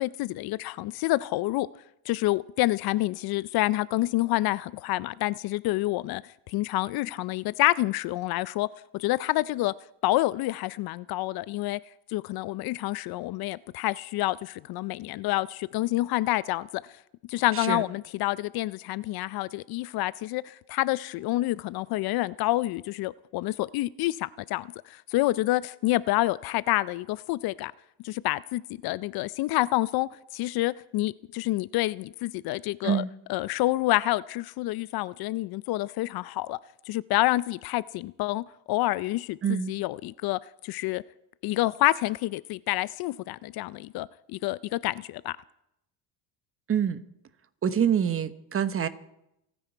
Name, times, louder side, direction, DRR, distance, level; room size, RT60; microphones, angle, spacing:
voice 1, 0.0-1.7 2.1-6.2 6.5-8.7 8.9-9.7 10.0-11.8 12.1-16.8 17.3-27.7 28.0-33.0 33.3-36.6 36.9-41.0 41.4-45.4, left 17 dB, 60° left, 18 dB, 0.5 m, -28 dB
voice 2, 39.4-39.7 46.7-47.0 47.6-48.9, right 8 dB, 30° right, 12 dB, 1.1 m, -26 dB
28.5 x 9.9 x 4.5 m, 0.82 s
cardioid pair, 110°, 43 cm